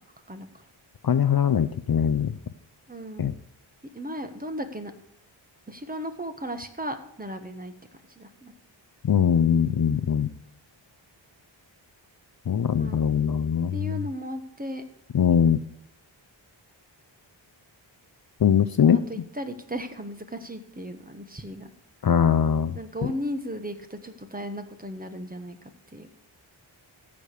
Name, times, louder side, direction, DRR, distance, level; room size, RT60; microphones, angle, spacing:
voice 1, 0.3-0.6 2.9-3.3 3.9-4.9 5.7-7.7 8.1-8.5 12.7-13.0 13.7-14.8 18.8-21.7 22.7-25.6 25.9-26.1, equal, 20° right, 7 dB, 1.4 m, -36 dB
voice 2, 1.0-2.3 3.2-3.3 9.0-10.3 12.5-14.0 15.1-15.6 18.4-19.0 22.0-22.8, left 8 dB, 50° left, 12 dB, 0.6 m, -21 dB
15.0 x 5.1 x 8.3 m, 0.73 s
wide cardioid pair, 80°, 47 cm